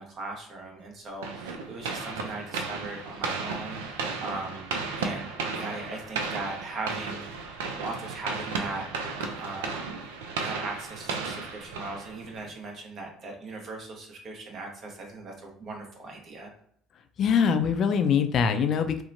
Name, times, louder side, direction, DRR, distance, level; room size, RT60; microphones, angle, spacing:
voice 1, 0.0-7.2 7.7-9.9 10.4-16.5, right 2 dB, 50° right, 1 dB, 0.8 m, -39 dB
sound 1, 1.2-12.5, right 4 dB, 90° right, 0.3 m, -34 dB
voice 2, 17.2-19.0, left 7 dB, 55° left, 8 dB, 0.3 m, -23 dB
2.8 x 2.1 x 2.6 m, 0.66 s
supercardioid pair, 80°, 0 cm